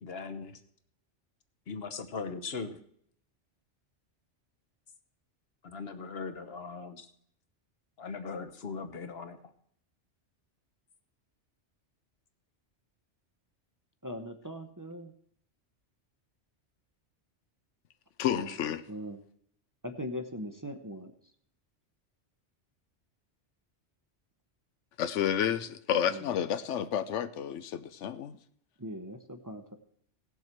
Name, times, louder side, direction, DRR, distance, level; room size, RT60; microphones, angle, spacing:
voice 1, 0.0-0.6 1.7-2.8 5.6-7.1 8.0-9.4, left 4 dB, 60° left, 9 dB, 1.2 m, -39 dB
voice 2, 14.0-15.1 18.3-18.6 18.9-19.2 19.8-21.1 26.1-26.3 28.8-29.8, equal, 20° right, 6 dB, 0.7 m, -40 dB
voice 3, 18.2-18.8 25.0-28.4, left 9 dB, 85° left, 12 dB, 1.0 m, -30 dB
17.5 x 7.1 x 4.5 m, 0.68 s
omnidirectional pair, 1.2 m